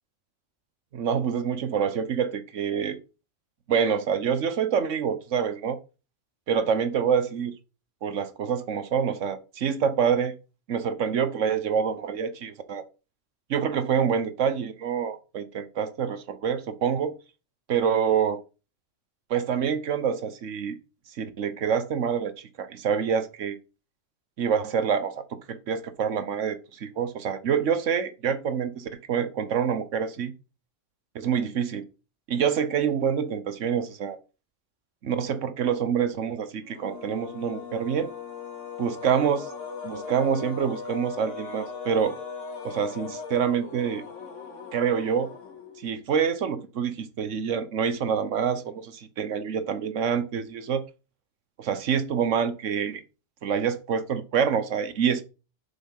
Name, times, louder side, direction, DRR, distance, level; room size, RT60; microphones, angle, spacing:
voice 1, 0.9-3.0 3.7-5.8 6.5-7.5 8.0-10.3 10.7-12.8 13.5-17.1 17.7-18.4 19.3-20.8 21.1-23.6 24.4-30.3 31.1-31.9 32.3-34.2 35.0-38.1 38.8-39.5 39.8-42.2 42.6-44.0 44.7-45.3 45.8-50.8 51.6-53.0 53.4-55.2, right 7 dB, 85° right, 1.3 m, -26 dB
sound 1, 36.6-46.0, left 5 dB, 80° left, 2.3 m, -39 dB
7.2 x 5.7 x 5.5 m
omnidirectional pair, 1.3 m